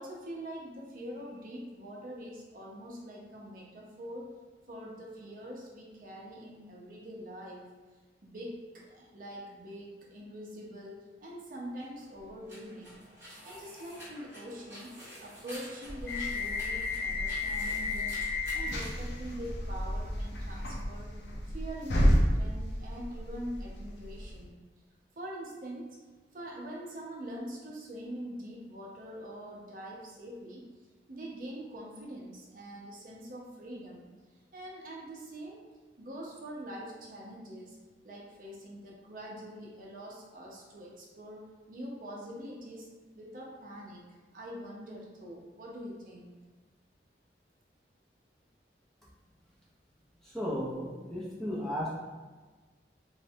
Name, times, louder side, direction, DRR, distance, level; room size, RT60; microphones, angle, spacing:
voice 1, 0.0-4.3 4.7-7.7 8.2-13.0 13.4-14.9 15.2-21.1 21.5-24.6 25.2-26.0 26.3-30.7 31.1-34.1 34.5-35.6 36.0-37.8 38.0-42.9 43.1-46.4, equal, 50° right, -3 dB, 0.5 m, -44 dB
sound 1, 11.7-19.6, equal, 15° right, 0.8 m, -49 dB
sound 2, 16.1-24.4, left 1 dB, 80° left, 0.5 m, -31 dB
voice 2, 50.2-52.0, equal, ahead, -7 dB, 0.5 m, -35 dB
3.1 x 2.1 x 2.6 m, 1.3 s
head